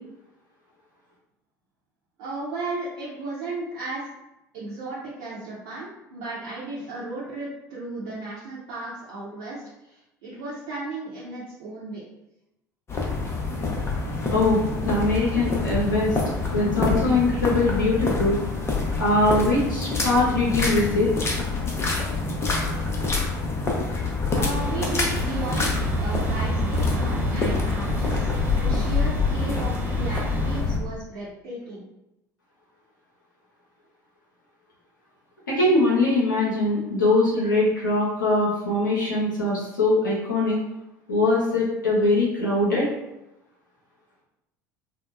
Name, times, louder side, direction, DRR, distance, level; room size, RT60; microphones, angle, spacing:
voice 1, 2.2-4.1 4.5-12.0 24.3-31.8, right 2 dB, 60° right, -10 dB, 0.8 m, -35 dB
sound 1, 12.9-30.8, left 3 dB, 25° left, 0.6 m, -26 dB
voice 2, 14.3-16.2 16.5-18.4 19.0-21.1 35.5-40.6 41.1-42.9, left 2 dB, 80° left, -6 dB, 0.6 m, -22 dB
sound 2, 24.5-30.6, right 1 dB, 15° right, 0.5 m, -29 dB
2.7 x 2.1 x 2.4 m, 0.90 s
figure-of-eight pair, 65°, 10 cm